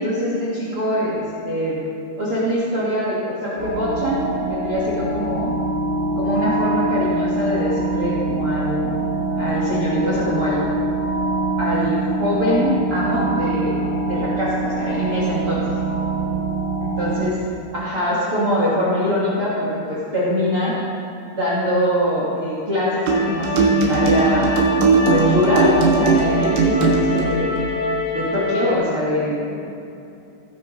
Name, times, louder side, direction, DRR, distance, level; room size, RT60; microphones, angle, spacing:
voice 1, 0.0-1.8 2.2-5.5 6.2-9.0 9.4-10.6 11.6-13.8 14.1-15.6 17.0-17.4 17.7-20.7 21.4-24.5 25.1-27.6 28.1-29.6, equal, 55° right, -7 dB, 1.6 m, -23 dB
sound 1, 3.6-17.2, right 2 dB, 50° left, 3.5 m, -24 dB
sound 2, 23.1-28.7, left 2 dB, 70° left, 3.5 m, -26 dB
sound 3, 23.1-27.3, right 4 dB, 80° right, 3.5 m, -18 dB
18.0 x 10.0 x 3.1 m, 2.7 s
omnidirectional pair, 5.2 m